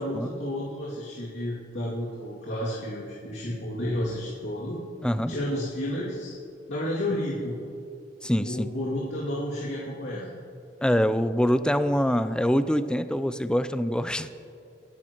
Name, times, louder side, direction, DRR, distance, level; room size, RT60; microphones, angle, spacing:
voice 1, 0.0-4.8 5.1-6.3 6.7-7.6 8.4-10.3, left 1 dB, 85° left, -7 dB, 2.5 m, -31 dB
voice 2, 5.0-5.3 8.2-8.7 10.8-14.3, equal, 5° left, 11 dB, 0.4 m, -24 dB
25.0 x 12.5 x 3.0 m, 2.5 s
head